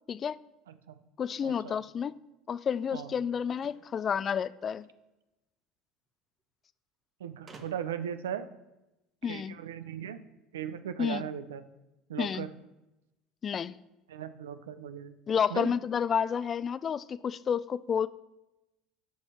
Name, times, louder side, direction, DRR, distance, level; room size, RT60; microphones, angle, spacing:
voice 1, 0.7-1.0 1.4-1.8 2.9-3.1 7.2-8.5 9.2-10.2 10.5-11.6 12.1-12.5 14.1-15.1 15.5-15.7, right 9 dB, 85° right, 0.5 m, -38 dB
voice 2, 1.2-2.1 2.5-4.9 9.2-9.5 11.0-11.2 12.2-12.5 13.4-13.7 15.3-18.1, left 7 dB, 40° left, 0.3 m, -30 dB
sound 1, 3.5-5.0 6.1-6.2 6.4-6.5 7.5-8.1, right 4 dB, 35° right, 1.5 m, -54 dB
9.9 x 5.5 x 4.3 m
hypercardioid pair, 75°, 0 cm